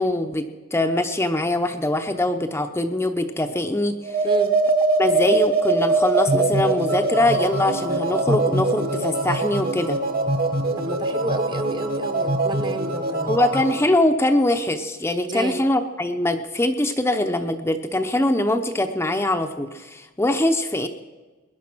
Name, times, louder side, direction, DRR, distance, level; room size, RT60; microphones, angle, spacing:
voice 1, 0.0-4.3 5.0-10.0 13.3-20.9, left 1 dB, 10° left, 6 dB, 0.6 m, -23 dB
sound 1, 4.0-13.9, right 2 dB, 45° right, 1.6 m, -23 dB
voice 2, 10.8-13.4 15.3-15.6, right 1 dB, 20° right, 10 dB, 0.9 m, -30 dB
20.5 x 10.5 x 6.1 m, 1.3 s
head